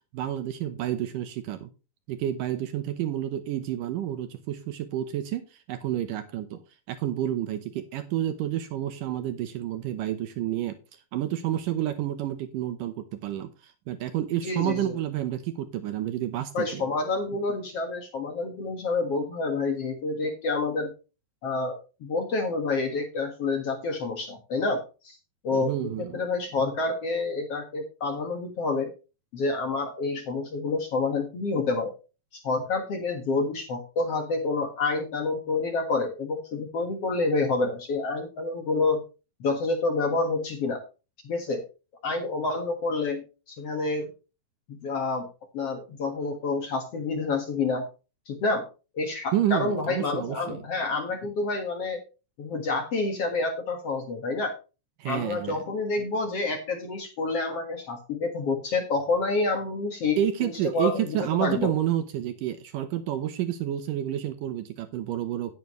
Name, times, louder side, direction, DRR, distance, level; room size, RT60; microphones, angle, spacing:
voice 1, 0.1-1.7 2.1-6.6 6.9-10.8 11.1-16.9 25.5-26.2 49.3-50.6 55.0-55.6 60.2-65.5, right 11 dB, 75° right, 9 dB, 2.5 m, -29 dB
voice 2, 14.4-15.0 16.5-20.9 21.4-25.2 25.4-28.9 29.3-31.9 32.3-39.0 39.4-40.8 41.2-41.6 42.0-44.1 44.7-45.3 45.5-47.9 48.3-48.7 49.0-52.0 52.4-54.5 55.1-61.7, left 3 dB, 50° left, 4 dB, 2.3 m, -28 dB
11.5 x 10.5 x 3.1 m, 0.31 s
omnidirectional pair, 4.0 m